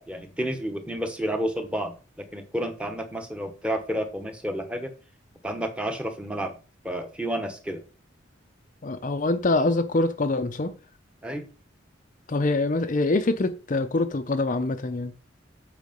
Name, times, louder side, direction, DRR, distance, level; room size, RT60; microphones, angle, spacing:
voice 1, 0.1-4.9 5.4-6.5 6.8-7.8 11.2-11.5, equal, 5° right, 1.1 m, -30 dB
voice 2, 8.8-10.7 12.3-15.1, left 2 dB, 40° left, 0.6 m, -24 dB
8.3 x 5.0 x 5.2 m
head